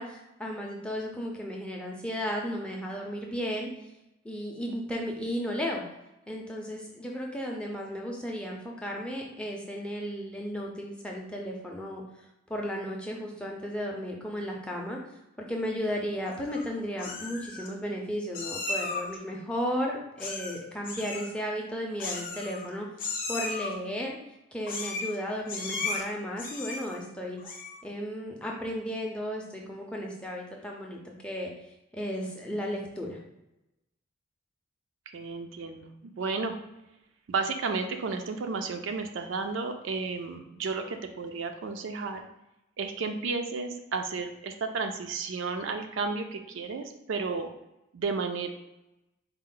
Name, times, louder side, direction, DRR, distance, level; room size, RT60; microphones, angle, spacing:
voice 1, 0.0-3.7 4.2-5.8 6.3-12.0 12.5-15.0 15.4-24.2 24.5-27.4 27.8-31.5 31.9-33.2, equal, 5° left, -1 dB, 0.5 m, -34 dB
Meow, 16.2-16.7 17.0-17.7 18.3-19.2 20.2-20.6 20.8-21.3 22.0-22.7 23.0-23.7 24.6-25.2 25.5-26.0 26.4-27.0 27.4-27.8, left 3 dB, 40° left, 0.7 m, -35 dB
voice 2, 35.1-36.6 37.3-42.3 42.8-47.5 47.9-48.5, right 4 dB, 65° right, 6 dB, 0.4 m, -32 dB
4.3 x 2.0 x 3.7 m, 0.90 s
head